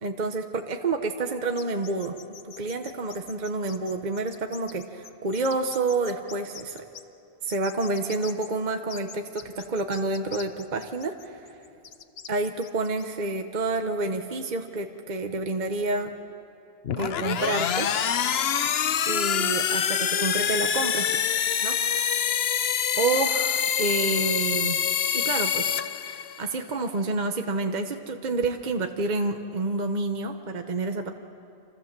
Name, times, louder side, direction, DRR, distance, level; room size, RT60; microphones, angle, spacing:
voice 1, 0.0-2.2 2.4-6.8 7.4-11.5 12.3-16.1 17.0-17.9 19.1-21.1 21.6-22.3 23.0-24.8 25.1-25.7 26.0-31.1, right 3 dB, 45° right, 5 dB, 1.1 m, -29 dB
sound 1, 1.6-7.0 7.5-8.5 8.9-13.0, left 7 dB, 85° left, 1.2 m, -44 dB
sound 2, 16.8-26.6, left 8 dB, 65° left, 1.0 m, -26 dB
27.5 x 27.0 x 7.5 m, 2.8 s
omnidirectional pair, 1.1 m